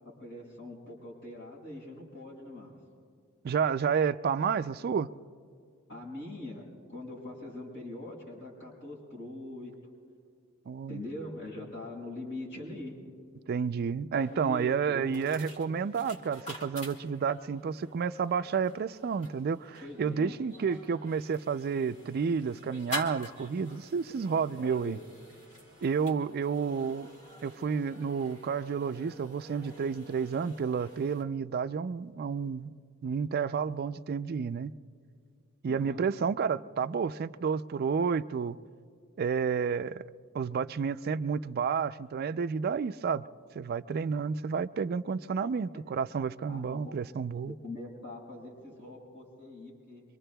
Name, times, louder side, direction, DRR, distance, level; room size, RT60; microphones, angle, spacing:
voice 1, 0.2-2.7 5.9-6.6 6.9-9.7 10.9-13.0 14.1-15.2 19.8-20.4 24.6-25.0 35.6-36.0 45.7-45.8 46.5-46.9 47.4-50.0, left 2 dB, 65° left, 5.5 m, -43 dB
voice 2, 3.4-5.1 10.7-11.0 13.5-25.0 25.8-27.1 27.4-32.7 33.0-34.7 35.6-38.6 39.2-40.0 40.3-43.3 43.6-47.5, right 6 dB, 50° right, 0.3 m, -30 dB
sound 1, 14.2-31.2, left 1 dB, 35° left, 1.7 m, -47 dB
25.0 x 24.5 x 2.3 m
head